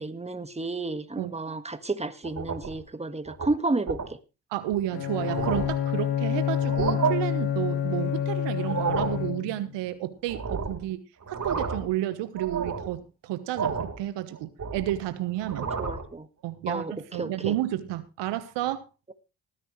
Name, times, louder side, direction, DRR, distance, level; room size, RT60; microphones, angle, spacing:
voice 1, 0.0-4.2 15.8-16.3 16.7-17.5, right 2 dB, 15° right, 10 dB, 1.7 m, -31 dB
sound 1, 2.2-2.8 3.3-3.5 3.9-4.1 4.7-4.8 5.1-5.8 6.6-7.1 8.5-9.2 10.3-10.8 11.2-11.9 12.4-12.9 13.6-14.0 14.4-15.0 15.4-16.1, right 5 dB, 40° right, 4.1 m, -31 dB
voice 2, 4.5-11.0 11.3-15.7 16.4-16.8 17.1-18.9, right 13 dB, 75° right, 12 dB, 1.3 m, -31 dB
Bowed string instrument, 4.9-9.7, left 9 dB, 70° left, 2.0 m, -28 dB
19.0 x 10.0 x 3.2 m, 0.30 s
hypercardioid pair, 50°, 43 cm